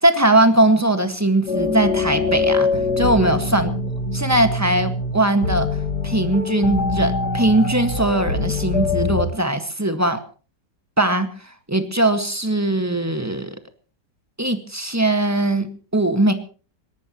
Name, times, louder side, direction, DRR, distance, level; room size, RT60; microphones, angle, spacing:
voice 1, 0.0-3.7 4.1-5.7 6.0-10.2 11.0-13.6 14.4-16.3, right 1 dB, 10° right, 8 dB, 1.6 m, -20 dB
sound 1, 1.5-9.2, left 3 dB, 65° left, 3.1 m, -23 dB
22.0 x 18.5 x 3.1 m, 0.39 s
omnidirectional pair, 1.9 m